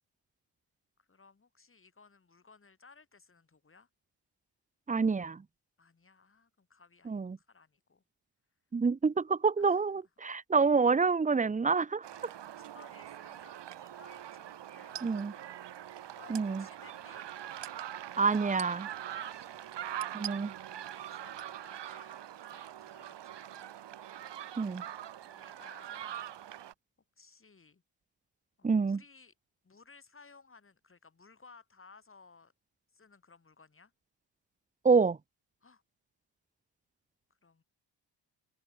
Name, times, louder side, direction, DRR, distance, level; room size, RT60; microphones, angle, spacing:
voice 1, 1.0-3.9 5.8-8.0 9.6-10.0 12.1-15.6 16.2-17.2 19.0-19.6 20.2-23.8 24.6-26.4 27.2-27.8 28.6-29.3 29.6-32.5 32.9-33.9 35.6-35.8 37.4-37.6, left 4 dB, 30° left, 6.3 m, -60 dB
voice 2, 4.9-5.4 7.1-7.4 8.7-12.0 15.0-15.3 16.3-16.6 18.2-18.9 20.1-20.5 24.6-24.8 28.6-29.0 34.8-35.2, right 4 dB, 20° right, 0.6 m, -27 dB
sound 1, 12.0-26.7, right 11 dB, 75° right, 1.7 m, -43 dB
open air
wide cardioid pair, 135°, 42 cm